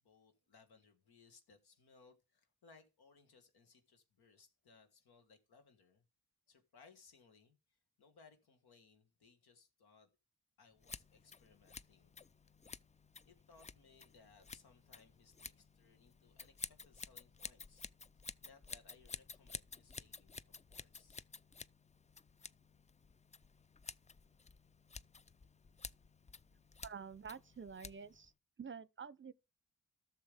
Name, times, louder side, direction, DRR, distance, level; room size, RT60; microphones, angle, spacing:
voice 1, 0.0-6.0 6.5-10.1 10.6-12.1 13.2-17.9 18.4-21.2, left 4 dB, 85° left, 1.6 m, -66 dB
Scissors, 10.8-28.3, left 4 dB, 20° left, 0.4 m, -53 dB
voice 2, 26.8-28.3 28.6-29.3, right 6 dB, 30° right, 0.7 m, -49 dB
12.0 x 6.8 x 3.4 m
supercardioid pair, 40°, 37 cm